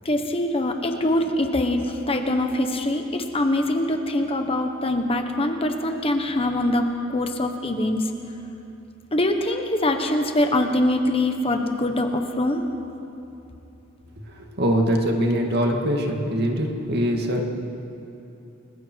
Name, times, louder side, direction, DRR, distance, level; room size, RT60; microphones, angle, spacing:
voice 1, 0.0-8.1 9.1-12.6, left 1 dB, 30° left, 5 dB, 1.3 m, -23 dB
voice 2, 14.4-17.4, equal, 55° right, 1 dB, 2.4 m, -23 dB
30.0 x 21.0 x 4.7 m, 2.9 s
head